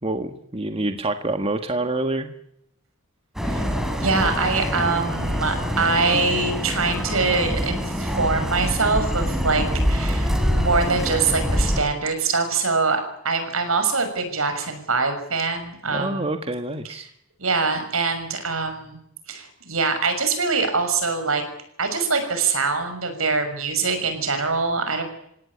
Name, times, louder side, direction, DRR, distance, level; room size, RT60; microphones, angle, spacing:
voice 1, 0.0-2.3 15.9-17.0, right 2 dB, 30° right, 7 dB, 1.7 m, -26 dB
sound 1, 3.4-11.8, equal, ahead, 4.5 m, -25 dB
voice 2, 4.0-16.3 17.4-19.0 19.3-21.4 21.8-25.0, right 4 dB, 85° right, 7 dB, 6.3 m, -24 dB
27.5 x 17.0 x 9.9 m, 0.74 s
head